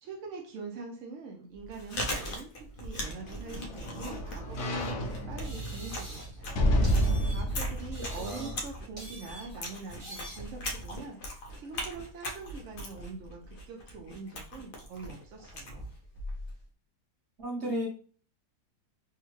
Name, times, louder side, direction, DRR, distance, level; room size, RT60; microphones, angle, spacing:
voice 1, 0.0-6.6 7.0-15.9, right 4 dB, 70° right, 0 dB, 0.7 m, -44 dB
Chewing mastication, 1.5-16.6, left 1 dB, 85° left, 0.4 m, -40 dB
sound 1, 2.8-9.2 9.6-9.7, equal, 65° left, 0.8 m, -31 dB
sound 2, 4.8-4.9 5.4-6.4 6.8-7.6 7.9-8.7 9.0-9.6 10.0-10.5, right 1 dB, 25° right, 0.9 m, -46 dB
voice 2, 8.2-8.6 17.4-17.9, equal, 45° right, -3 dB, 1.2 m, -34 dB
3.4 x 2.1 x 3.1 m, 0.42 s
omnidirectional pair, 1.7 m